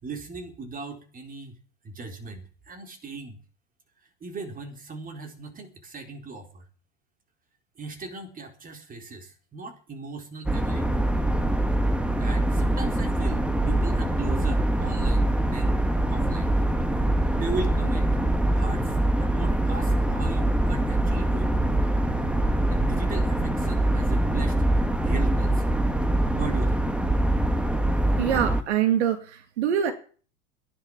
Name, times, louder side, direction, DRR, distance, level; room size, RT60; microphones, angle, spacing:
voice 1, 0.0-1.6 1.8-3.4 4.2-6.6 7.8-11.0 12.2-15.8 16.1-16.6 17.3-18.2 18.5-21.6 22.7-24.6 25.0-25.8 26.4-26.8, right 3 dB, 25° right, 5 dB, 4.2 m, -38 dB
sound 1, 10.5-28.6, right 1 dB, 5° right, 1.4 m, -24 dB
voice 2, 28.2-29.9, right 9 dB, 75° right, 8 dB, 2.4 m, -24 dB
15.0 x 11.0 x 7.3 m, 0.41 s
hypercardioid pair, 105°, 34 cm